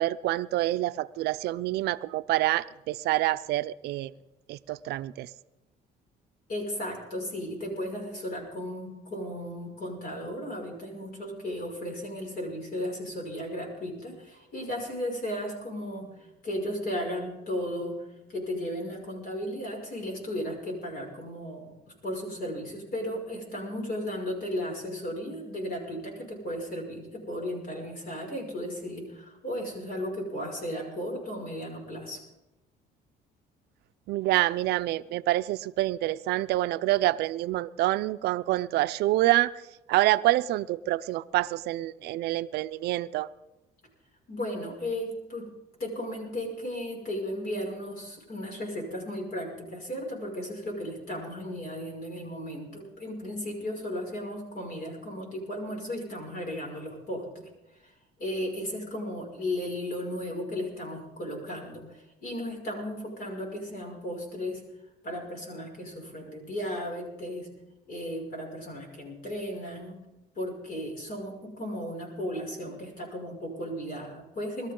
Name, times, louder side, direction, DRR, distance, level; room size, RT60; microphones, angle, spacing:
voice 1, 0.0-4.1 4.5-5.3 34.1-39.5 39.9-43.3, right 16 dB, 75° right, 0.5 m, -27 dB
voice 2, 6.5-16.1 16.4-21.7 22.0-32.2 44.3-45.5 45.8-57.2 57.8-57.9 58.2-64.6 65.0-67.5 67.9-70.0 70.4-74.7, equal, 65° left, 5.9 m, -35 dB
21.5 x 13.5 x 3.8 m
cardioid pair, 110°, 17 cm